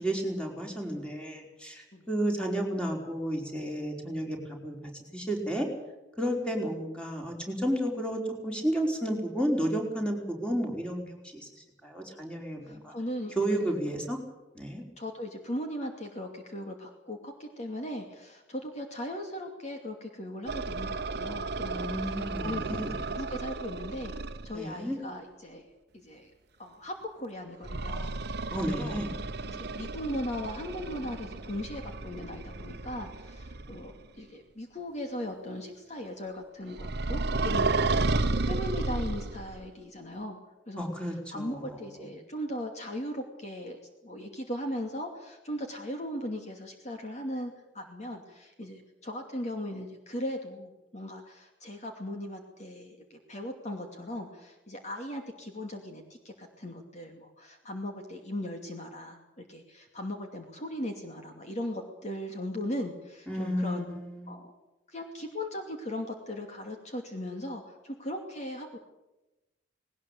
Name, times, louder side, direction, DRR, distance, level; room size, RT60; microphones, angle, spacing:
voice 1, 0.0-4.4 4.6-4.8 5.1-5.7 6.2-11.5 11.8-12.9 13.3-14.2 14.5-14.8 21.7-23.0 24.5-25.0 28.5-29.1 40.8-41.9 63.3-64.4, right 1 dB, 5° left, 1 dB, 4.8 m, -32 dB
voice 2, 12.6-13.8 15.0-24.1 24.4-25.7 25.9-26.3 26.6-28.2 28.7-29.0 29.4-40.4 40.7-63.9 64.3-64.5 64.9-68.8, left 1 dB, 40° left, 3 dB, 2.6 m, -38 dB
sound 1, 20.5-24.5 27.6-34.0 36.8-39.6, right 3 dB, 60° right, 1.1 m, -33 dB
20.0 x 19.0 x 8.5 m, 0.99 s
head